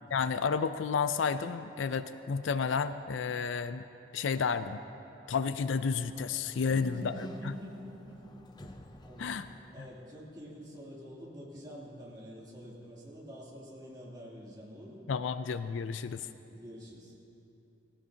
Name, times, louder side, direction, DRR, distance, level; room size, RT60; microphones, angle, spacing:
voice 1, 0.1-3.8 4.1-4.8 5.3-7.1 9.2-9.5 15.1-16.3, left 5 dB, 75° left, 12 dB, 0.4 m, -31 dB
Sliding door, 5.4-10.2, left 1 dB, 20° left, 0.5 m, -54 dB
voice 2, 6.6-8.3 8.6-9.4 9.7-15.0 16.5-17.1, equal, 20° right, -6 dB, 2.9 m, -47 dB
18.0 x 17.0 x 2.8 m, 2.9 s
head